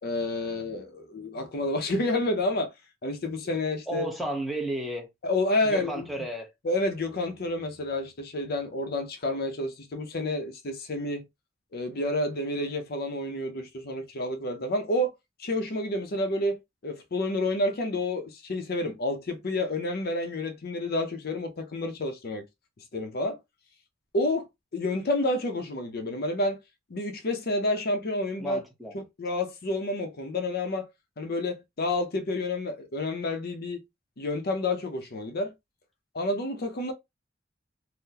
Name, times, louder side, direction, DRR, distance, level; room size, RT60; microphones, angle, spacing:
voice 1, 0.0-2.7 3.0-4.0 5.2-6.1 6.6-11.2 11.7-15.1 15.4-16.6 16.8-22.4 22.9-23.4 24.1-24.5 24.7-26.6 26.9-28.6 28.9-30.9 31.2-33.8 34.2-35.5 36.1-36.9, left 2 dB, 55° left, 0.6 m, -29 dB
voice 2, 3.9-5.1 5.6-6.5 28.4-28.9, right 1 dB, ahead, 0.9 m, -33 dB
3.7 x 2.1 x 2.8 m
head